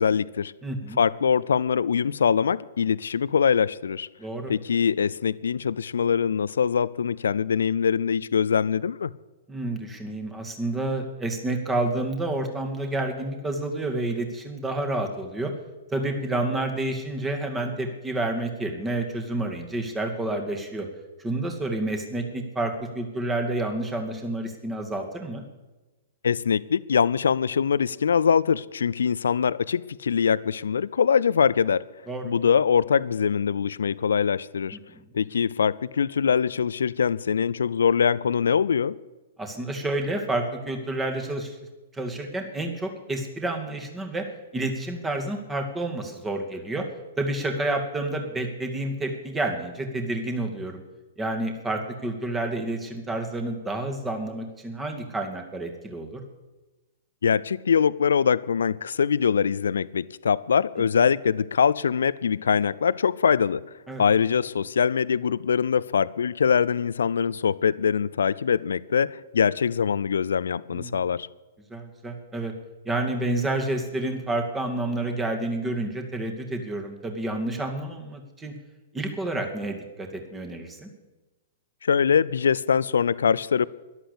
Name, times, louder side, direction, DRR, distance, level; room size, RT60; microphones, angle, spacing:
voice 1, 0.0-0.5 1.0-4.1 4.5-9.1 26.2-31.8 32.2-34.8 35.1-39.0 57.2-63.7 64.0-71.3 81.8-83.7, left 7 dB, 65° left, 0.5 m, -23 dB
voice 2, 0.6-1.0 4.2-4.5 9.5-15.5 15.9-20.9 21.2-25.4 32.1-32.3 34.9-35.0 39.4-41.6 41.9-44.2 44.5-46.9 47.2-50.8 51.2-56.2 63.9-64.0 70.7-71.0 71.7-72.5 72.8-78.5 78.9-80.9, right 2 dB, 10° right, 2.3 m, -29 dB
13.0 x 11.5 x 8.5 m
figure-of-eight pair, 110°, 0 cm